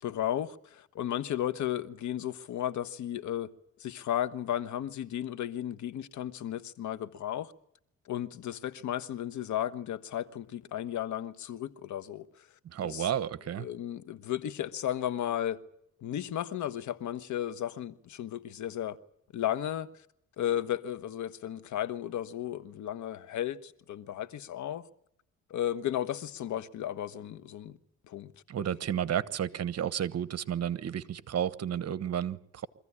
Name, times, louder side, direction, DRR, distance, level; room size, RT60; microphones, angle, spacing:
voice 1, 0.0-3.5 3.8-7.5 8.0-12.5 12.8-13.1 13.6-15.6 16.0-19.0 19.3-20.1 20.4-24.9 25.5-27.8 28.1-28.6, left 11 dB, 75° left, 1.3 m, -34 dB
voice 2, 12.6-13.7 28.5-32.7, right 9 dB, 55° right, 1.2 m, -32 dB
24.5 x 15.0 x 9.8 m
cardioid pair, 90°, 30 cm